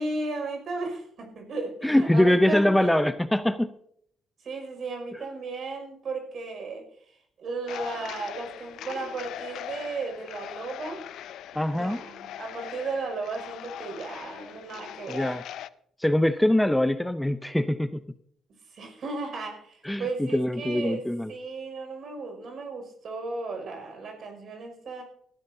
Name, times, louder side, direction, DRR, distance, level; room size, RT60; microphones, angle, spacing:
voice 1, 0.0-3.1 4.4-6.9 7.4-11.1 11.5-15.3 18.7-21.0 21.3-25.0, right 3 dB, 60° right, 4 dB, 5.8 m, -35 dB
voice 2, 1.8-3.7 11.5-12.0 15.1-15.4 16.0-17.9 19.8-21.3, left 1 dB, 5° left, 12 dB, 0.6 m, -23 dB
sound 1, 7.7-15.7, left 11 dB, 80° left, 0.5 m, -40 dB
18.5 x 13.5 x 2.8 m, 0.66 s
cardioid pair, 90°, 0 cm